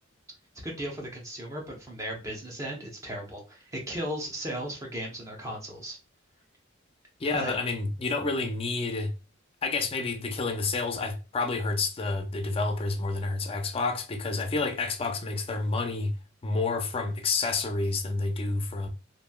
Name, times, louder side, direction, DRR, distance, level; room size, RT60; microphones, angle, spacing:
voice 1, 0.6-6.0 7.3-7.5, equal, 15° right, 0.7 m, -36 dB
voice 2, 7.2-9.1 9.6-16.1 16.4-18.9, left 3 dB, 30° left, 0.4 m, -29 dB
3.0 x 2.6 x 2.2 m
head